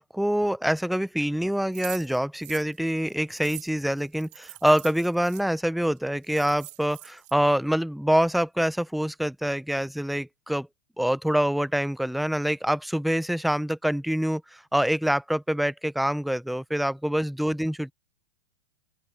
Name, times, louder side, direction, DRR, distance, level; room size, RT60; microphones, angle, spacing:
voice 1, 0.0-10.7 11.0-17.9, equal, ahead, 0.5 m, -25 dB
sound 1, 1.7-5.4 6.0-6.1 6.2-7.3, right 20 dB, 40° right, 1.8 m, -44 dB
open air
hypercardioid pair, 140°, 19 cm